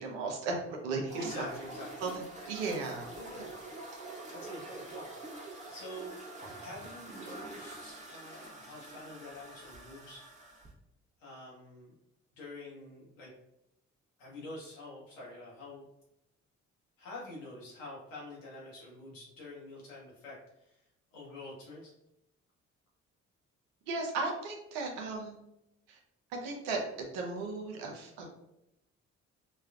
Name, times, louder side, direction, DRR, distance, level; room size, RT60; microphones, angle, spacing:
voice 1, 0.0-1.3 2.0-2.1 2.5-3.1 23.9-25.4 25.9-26.0 26.4-28.3, right 3 dB, 75° right, 2 dB, 0.7 m, -35 dB
sound 1, 1.1-10.7, right 2 dB, 20° right, 0.9 m, -46 dB
voice 2, 1.2-2.1 3.1-3.6 4.3-5.1 5.4-6.1 6.6-10.3 11.2-11.9 12.4-13.3 14.2-15.8 17.0-20.8 21.1-21.9, left 1 dB, 80° left, -5 dB, 1.1 m, -47 dB
4.1 x 2.3 x 2.3 m, 0.85 s
figure-of-eight pair, 40°, 38 cm